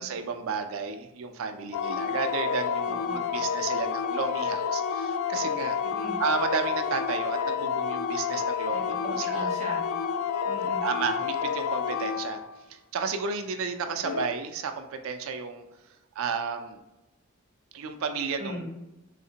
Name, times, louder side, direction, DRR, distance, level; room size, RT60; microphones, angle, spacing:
voice 1, 0.0-5.8 6.2-9.5 10.8-12.4 12.7-15.7 16.2-16.8 17.7-18.7, right 5 dB, 75° right, 7 dB, 0.4 m, -32 dB
sound 1, 1.7-12.5 14.0-14.3, left 7 dB, 80° left, 0.3 m, -29 dB
voice 2, 2.9-3.2 5.8-6.2 8.7-9.8 10.4-10.8 18.4-18.7, equal, 35° right, -2 dB, 0.8 m, -39 dB
3.2 x 2.8 x 2.7 m, 0.96 s
head